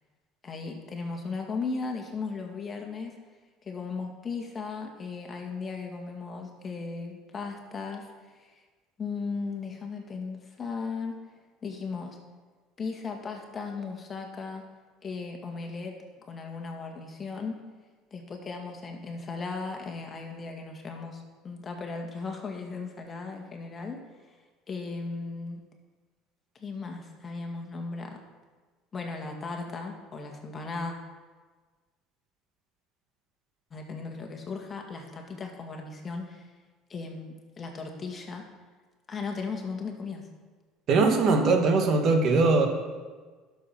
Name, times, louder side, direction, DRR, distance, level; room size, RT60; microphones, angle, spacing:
voice 1, 0.4-3.2 3.6-8.1 8.3-8.6 9.0-11.2 11.6-12.2 12.8-14.7 15.0-16.0 16.3-17.6 18.1-24.0 24.7-25.6 26.6-28.2 28.9-31.0 33.7-36.5 36.9-38.5 39.1-40.3, left 4 dB, 30° left, 2 dB, 2.0 m, -36 dB
voice 2, 40.9-42.7, right 3 dB, 50° right, 4 dB, 1.8 m, -21 dB
11.0 x 7.0 x 6.0 m, 1.4 s
supercardioid pair, 105°, 0 cm